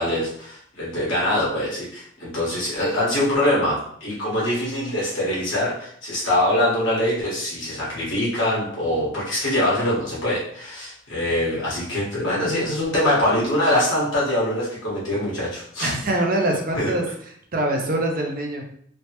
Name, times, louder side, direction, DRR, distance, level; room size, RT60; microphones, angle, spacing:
voice 1, 0.0-15.9 16.7-16.9, left 1 dB, 90° left, -7 dB, 1.4 m, -23 dB
voice 2, 15.8-17.0 17.5-18.6, right 1 dB, 45° right, 1 dB, 0.5 m, -23 dB
3.2 x 2.0 x 2.9 m, 0.64 s
head